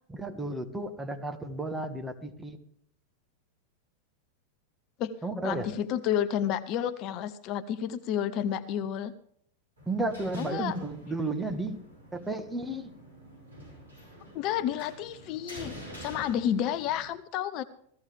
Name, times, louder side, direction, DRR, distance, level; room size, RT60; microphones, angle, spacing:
voice 1, 0.1-2.6 5.2-5.7 9.9-11.8 12.1-12.9, right 2 dB, 10° right, 6 dB, 1.5 m, -33 dB
voice 2, 5.4-9.1 10.4-10.8 14.3-17.6, left 10 dB, 40° left, 12 dB, 0.6 m, -30 dB
sound 1, 9.8-17.1, equal, 80° right, 6.3 m, -48 dB
16.0 x 14.5 x 3.4 m, 0.66 s
figure-of-eight pair, 90°, 0 cm